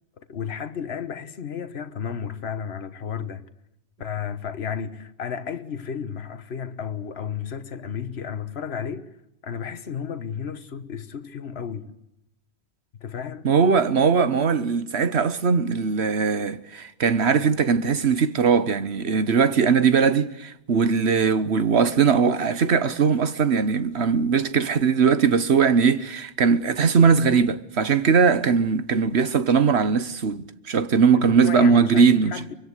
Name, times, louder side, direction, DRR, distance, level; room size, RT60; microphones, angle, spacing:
voice 1, 0.2-3.4 4.0-9.1 9.4-12.0 13.0-13.5 31.1-32.5, left 7 dB, 75° left, 1.4 m, -33 dB
voice 2, 13.4-32.3, right 6 dB, 85° right, 1.5 m, -20 dB
25.0 x 22.0 x 8.2 m
omnidirectional pair, 1.1 m